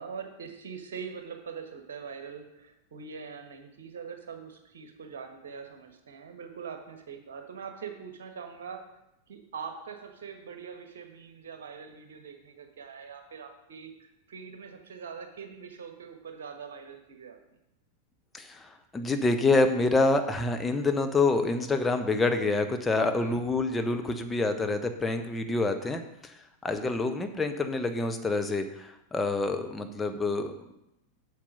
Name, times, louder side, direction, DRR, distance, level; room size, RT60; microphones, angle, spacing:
voice 1, 0.0-8.8 9.3-17.4 23.0-23.5, right 6 dB, 60° right, 5 dB, 1.5 m, -43 dB
voice 2, 18.3-26.3 26.6-30.5, left 3 dB, 10° left, 6 dB, 0.9 m, -27 dB
7.5 x 7.0 x 5.4 m, 0.87 s
figure-of-eight pair, 90°, 0 cm